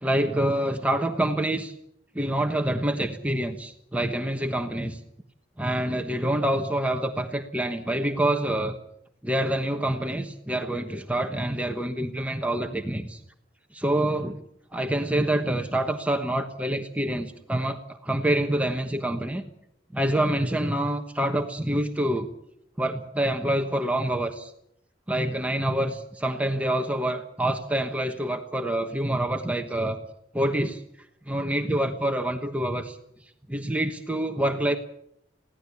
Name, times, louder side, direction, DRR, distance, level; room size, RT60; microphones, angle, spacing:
voice 1, 0.0-1.7 2.1-5.0 5.6-8.8 9.2-13.2 13.7-14.4 14.7-19.4 19.9-22.3 22.8-24.5 25.1-30.0 30.3-30.8 31.3-33.0 33.5-34.8, right 1 dB, 5° right, 4 dB, 1.2 m, -26 dB
22.0 x 16.5 x 8.5 m, 0.75 s
head